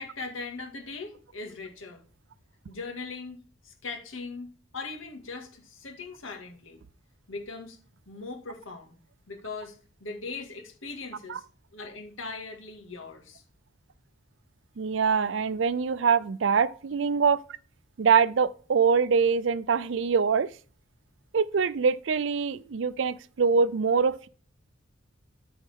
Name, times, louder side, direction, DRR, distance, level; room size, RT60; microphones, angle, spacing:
voice 1, 0.0-2.0 2.7-6.8 7.3-7.8 8.1-8.9 9.3-11.4 11.7-13.4 16.6-16.7, left 4 dB, 85° left, 2.0 m, -40 dB
voice 2, 14.8-17.4 18.0-20.5 21.3-24.3, right 5 dB, 65° right, 0.4 m, -24 dB
13.5 x 4.6 x 3.6 m
head